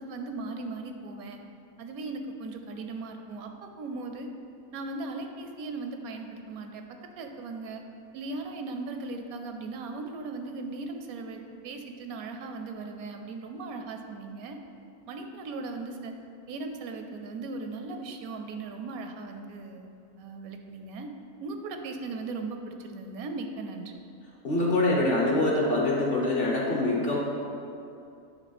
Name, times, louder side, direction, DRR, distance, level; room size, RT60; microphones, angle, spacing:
voice 1, 0.0-1.4 1.8-4.3 4.7-6.8 7.2-7.8 8.1-14.6 15.1-16.1 16.5-19.9 20.2-21.1 21.4-23.9, right 3 dB, 80° right, 5 dB, 1.0 m, -38 dB
voice 2, 24.4-27.2, left 2 dB, 45° left, -2 dB, 0.9 m, -24 dB
9.1 x 3.5 x 4.2 m, 2.5 s
omnidirectional pair, 1.5 m